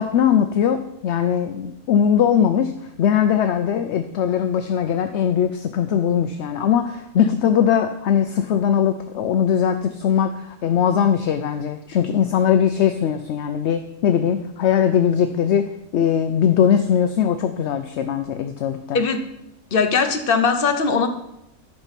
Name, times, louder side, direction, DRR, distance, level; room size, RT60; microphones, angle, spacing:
voice 1, 0.0-2.7 3.0-19.0, left 8 dB, 65° left, 8 dB, 0.7 m, -20 dB
voice 2, 19.7-21.1, left 5 dB, 45° left, 7 dB, 1.0 m, -19 dB
10.5 x 5.6 x 5.8 m, 0.82 s
omnidirectional pair, 1.5 m